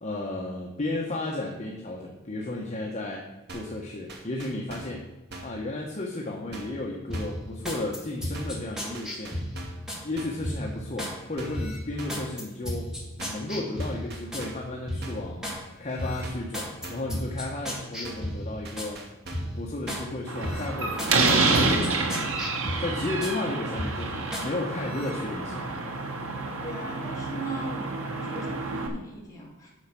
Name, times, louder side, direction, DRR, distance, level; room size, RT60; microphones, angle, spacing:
voice 1, 0.0-5.1 5.4-9.4 10.0-12.9 13.3-15.5 15.8-19.0 19.5-25.7, left 2 dB, 35° left, -2 dB, 1.2 m, -34 dB
sound 1, 3.5-3.8 4.1-5.0 5.3-5.6 6.5-6.8 7.1-7.5 8.3-8.7 8.9-9.9 10.2-10.5 11.4-11.7 12.0-12.3 13.2-13.5 13.8-14.7 15.0-15.3 16.2-16.6 16.8-17.2 18.0-18.4 18.7-19.6 19.9-20.2 21.1-21.4 21.7-22.0, right 2 dB, 55° right, 1.6 m, -42 dB
sound 2, 7.1-10.0 10.4-11.2 11.5-14.5 14.9-15.6 16.0-18.9 19.3-20.1 20.4-23.4 23.8-24.5 24.8-25.1, equal, 5° right, 2.0 m, -35 dB
Slam, 20.3-28.9, right 3 dB, 75° right, 1.4 m, -28 dB
voice 2, 26.6-27.9 28.2-29.7, right 2 dB, 15° left, -5 dB, 3.1 m, -38 dB
9.5 x 6.6 x 5.9 m, 1.1 s
head